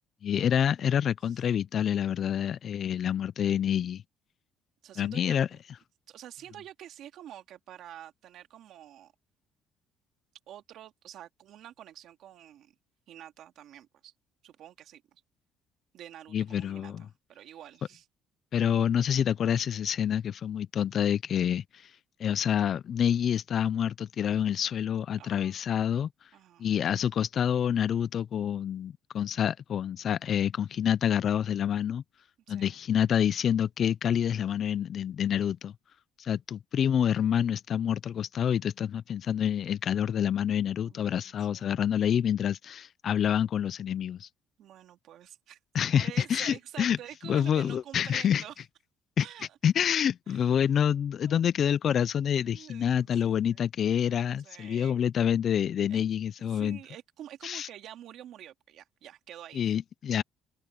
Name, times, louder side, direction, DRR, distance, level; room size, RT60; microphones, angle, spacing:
voice 1, 0.2-4.0 5.0-5.5 16.3-17.0 18.5-21.9 22.2-26.1 26.6-32.0 32.5-35.7 36.2-44.3 45.7-47.0 47.3-48.4 49.2-49.3 49.6-56.8 57.4-57.7 59.5-60.2, left 9 dB, 40° left, 0.3 m, -27 dB
voice 2, 4.8-5.6 6.1-9.1 10.5-12.7 13.1-14.1 14.4-15.2 15.9-18.1 25.2-25.6 26.3-26.7 32.5-32.8 40.8-41.8 44.6-45.6 45.9-48.5 49.2-49.6 50.3-50.4 51.3-51.5 52.4-53.7 54.4-55.1 55.8-56.0 56.5-59.7, right 11 dB, 55° right, 2.4 m, -48 dB
cardioid pair, 165°, 0 cm